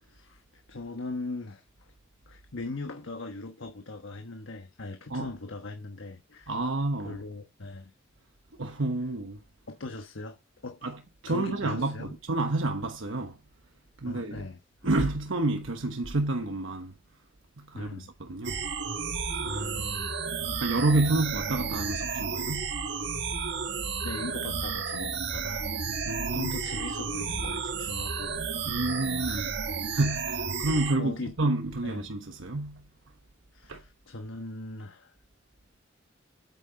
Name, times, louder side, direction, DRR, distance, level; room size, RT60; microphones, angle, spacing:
voice 1, 0.1-1.9 2.3-6.5 7.0-7.9 9.7-10.4 10.6-10.8 11.3-12.2 14.1-14.6 17.7-18.4 19.4-20.2 24.0-25.7 26.3-28.6 29.2-29.8 31.0-31.3 31.8-32.1 33.5-35.1, left 2 dB, 80° left, 1.2 m, -40 dB
voice 2, 6.5-7.2 8.6-9.4 10.8-11.0 11.2-13.4 14.0-14.5 14.8-16.9 17.6-18.6 19.3-19.7 20.5-22.7 26.0-26.5 28.6-29.5 29.9-32.8 33.7-33.8, right 2 dB, 75° right, 1.1 m, -29 dB
sound 1, 18.4-31.0, right 5 dB, 60° right, 1.5 m, -32 dB
8.5 x 8.4 x 4.0 m
head